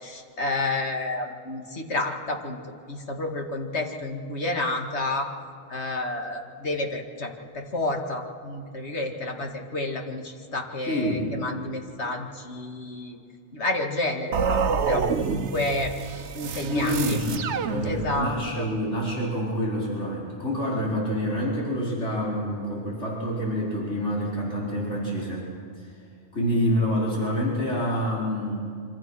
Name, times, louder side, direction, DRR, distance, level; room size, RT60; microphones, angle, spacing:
voice 1, 0.0-2.6 2.9-5.3 5.7-13.2 13.5-14.6 14.9-15.9 16.3-17.2 17.8-18.7, left 2 dB, 70° left, 3 dB, 2.4 m, -30 dB
voice 2, 10.8-11.3 16.7-26.0 26.3-28.6, equal, 85° left, -5 dB, 4.6 m, -27 dB
sound 1, 14.3-18.4, right 6 dB, 75° right, 1.2 m, -28 dB
25.5 x 25.5 x 6.2 m, 2.4 s
omnidirectional pair, 1.2 m